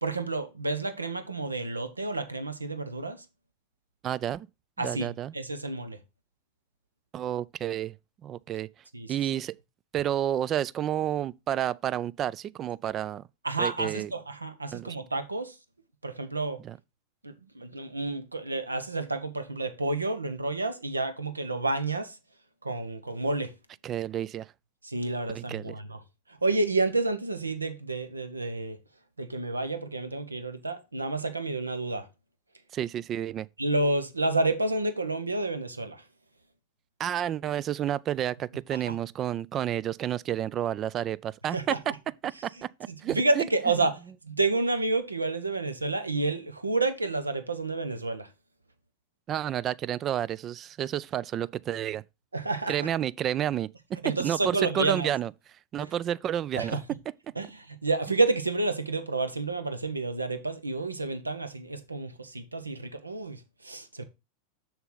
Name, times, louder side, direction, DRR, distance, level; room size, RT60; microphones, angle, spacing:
voice 1, 0.0-3.2 4.8-6.0 8.9-9.1 13.4-15.6 16.0-16.6 17.2-22.2 22.6-23.5 24.8-26.0 26.3-28.8 29.2-32.1 33.6-36.1 38.7-38.9 41.5-41.8 42.9-48.3 52.3-52.9 54.0-55.1 55.8-55.9 56.5-56.8 57.4-64.0, right 2 dB, 80° right, 1.1 m, -30 dB
voice 2, 4.0-4.5 4.8-5.3 7.1-7.9 8.2-8.7 9.1-9.6 9.9-13.2 13.6-14.1 14.7-14.9 16.6-16.8 23.8-24.5 25.3-25.7 32.7-33.5 37.0-41.8 42.2-43.4 49.3-52.0 52.7-55.3 55.7-56.8, right 11 dB, 30° right, 0.3 m, -30 dB
6.8 x 6.5 x 3.9 m
figure-of-eight pair, 90°, 0 cm